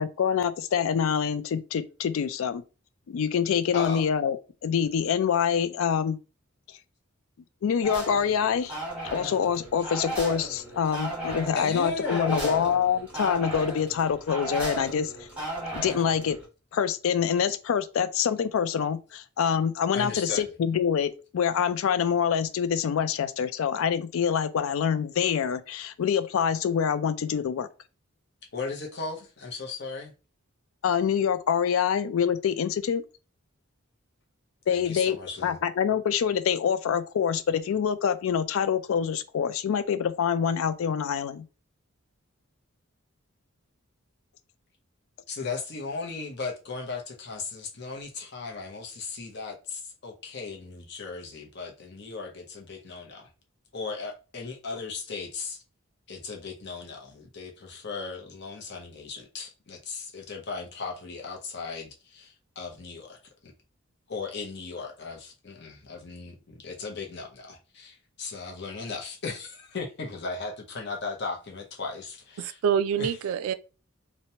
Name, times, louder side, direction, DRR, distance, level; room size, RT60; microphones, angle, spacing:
voice 1, 0.0-2.6 3.1-4.4 4.6-6.2 7.6-8.8 9.1-15.1 15.7-16.4 16.7-27.7 30.8-33.0 34.7-35.2 35.4-41.5, left 7 dB, 75° left, 0.3 m, -26 dB
voice 2, 3.7-4.1 11.6-12.7 19.9-20.5 28.5-30.1 34.7-35.6 45.3-53.3 53.7-55.6 56.1-63.5 64.1-72.6 73.0-73.2, left 4 dB, 55° left, 0.7 m, -37 dB
sound 1, 7.8-16.4, right 1 dB, 5° right, 1.1 m, -36 dB
voice 3, 72.4-73.5, right 7 dB, 90° right, 0.3 m, -26 dB
2.9 x 2.1 x 2.7 m
head